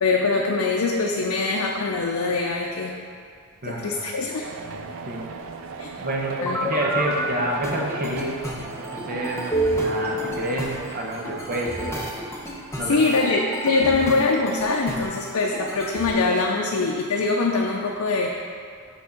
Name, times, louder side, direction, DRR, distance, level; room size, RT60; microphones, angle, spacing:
voice 1, 0.0-3.0 3.6-4.4 5.8-5.9 6.4-6.6 12.8-18.3, left 3 dB, 75° left, 0 dB, 0.5 m, -23 dB
voice 2, 3.6-4.2 4.6-5.3 6.0-8.4 8.8-9.4 9.7-12.1 12.8-13.2, right 1 dB, 45° right, -1 dB, 0.9 m, -29 dB
sound 1, 4.4-13.0, right 4 dB, 65° right, 0.4 m, -38 dB
sound 2, 6.4-7.2 7.6-16.1, right 1 dB, 15° left, 0.7 m, -30 dB
6.1 x 3.5 x 5.7 m, 2.2 s
head